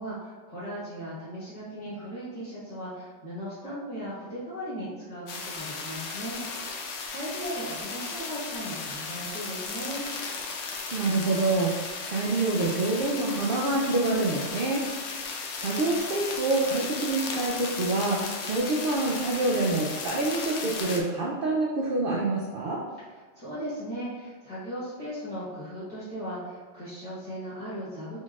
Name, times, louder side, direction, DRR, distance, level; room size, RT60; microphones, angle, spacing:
voice 1, 0.0-6.4 6.7-10.1 23.1-28.2, equal, 30° left, -12 dB, 1.2 m, -37 dB
sound 1, 5.3-21.0, left 4 dB, 65° left, 0.8 m, -35 dB
voice 2, 10.9-14.8 15.6-22.8, right 2 dB, 60° right, -3 dB, 0.6 m, -26 dB
4.1 x 4.0 x 2.3 m, 1.4 s
omnidirectional pair, 1.3 m